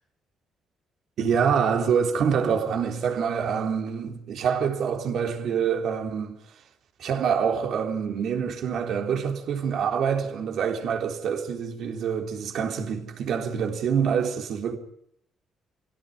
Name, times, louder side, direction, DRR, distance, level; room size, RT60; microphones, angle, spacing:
voice 1, 1.2-6.4 7.0-14.8, right 7 dB, 70° right, 3.7 m, -26 dB
22.5 x 17.0 x 10.0 m
cardioid pair, 90°, 0 cm